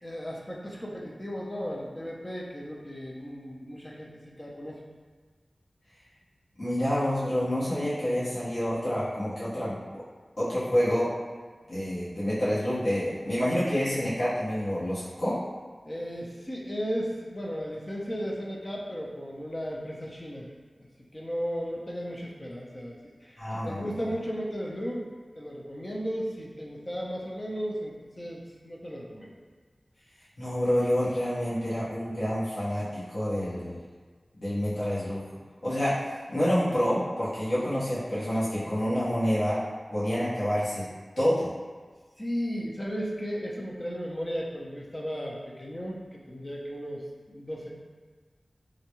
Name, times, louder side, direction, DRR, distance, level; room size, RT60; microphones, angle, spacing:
voice 1, 0.0-4.8 15.8-20.5 21.1-25.1 25.4-29.3 42.2-47.7, equal, 35° left, -3 dB, 0.6 m, -35 dB
voice 2, 6.6-9.8 10.4-11.1 11.7-15.4 23.4-23.8 30.4-33.8 34.4-35.2 35.6-39.6 39.9-40.9 41.2-41.5, equal, 65° left, -12 dB, 1.3 m, -28 dB
3.8 x 2.3 x 3.0 m, 1.5 s
wide cardioid pair, 55°, 0 cm